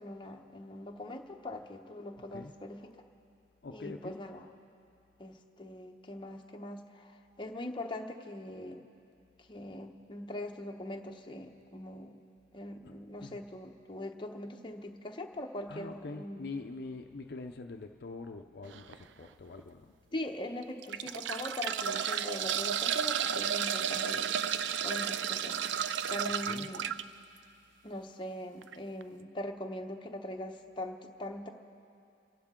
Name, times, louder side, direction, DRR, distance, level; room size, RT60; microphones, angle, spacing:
voice 1, 0.0-2.9 3.7-4.5 5.2-8.8 9.4-12.2 12.5-16.6 20.1-25.6 26.1-26.9 27.8-31.5, left 1 dB, 25° left, 2 dB, 0.9 m, -42 dB
voice 2, 3.6-4.2 12.8-12.9 13.2-13.5 15.7-19.9 26.5-26.7, left 3 dB, 60° left, 5 dB, 0.6 m, -44 dB
sound 1, 18.7-18.9 19.6-19.7 20.6-27.0 28.6-28.7 29.0-29.1, right 8 dB, 80° right, 0.4 m, -32 dB
28.5 x 11.5 x 3.7 m, 2.5 s
head